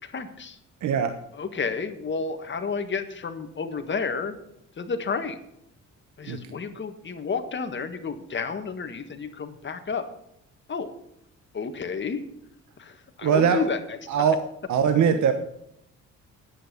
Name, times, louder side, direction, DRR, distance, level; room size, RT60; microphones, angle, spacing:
voice 1, 0.0-0.6 1.3-4.4 4.8-5.4 6.2-10.1 10.7-10.9 11.5-12.2 12.8-14.3, left 5 dB, 40° left, 7 dB, 1.7 m, -31 dB
voice 2, 0.8-1.1 6.3-6.4 13.2-13.7 14.1-14.4 14.7-15.3, right 7 dB, 70° right, 8 dB, 1.2 m, -21 dB
10.0 x 8.0 x 8.3 m, 0.77 s
cardioid pair, 90°, 30 cm